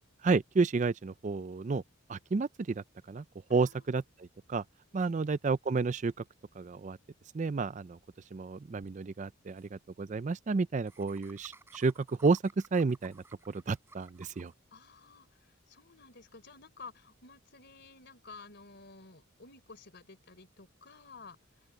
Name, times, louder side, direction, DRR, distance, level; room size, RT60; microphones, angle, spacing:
voice 1, 0.2-1.8 2.1-3.2 3.5-4.6 4.9-6.1 6.6-7.0 7.3-8.0 8.3-12.4 12.7-14.5, right 4 dB, 35° right, 0.4 m, -31 dB
voice 2, 3.5-3.9 4.9-5.2 14.7-15.4 15.7-21.4, left 4 dB, 50° left, 3.7 m, -52 dB
Laughter, 8.8-8.9 9.2-9.3 9.5-9.7 10.9-14.5, right 2 dB, 10° right, 7.8 m, -57 dB
open air
head